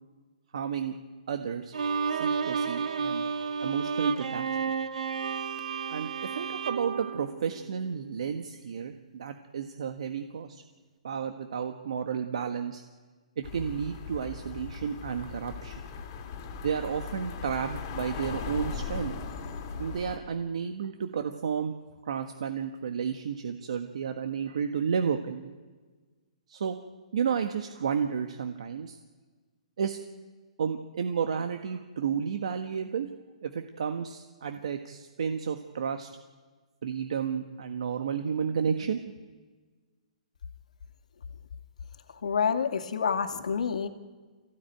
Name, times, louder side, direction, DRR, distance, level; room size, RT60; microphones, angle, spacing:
voice 1, 0.5-0.9 1.3-1.7 2.1-3.2 3.6-4.5 5.9-10.6 11.0-12.8 13.4-15.8 16.6-19.1 19.8-21.7 22.0-25.5 26.5-26.8 27.1-29.0 29.8-30.0 30.6-33.1 33.4-36.1 36.8-39.1, right 7 dB, 60° right, 6 dB, 1.5 m, -32 dB
Bowed string instrument, 1.7-8.0, right 5 dB, 80° right, 2.0 m, -31 dB
sound 1, 13.4-20.2, left 6 dB, 25° left, 2.6 m, -38 dB
voice 2, 42.2-43.9, left 6 dB, 75° left, 7 dB, 2.2 m, -28 dB
26.0 x 16.0 x 9.3 m, 1.4 s
hypercardioid pair, 175°, 4 cm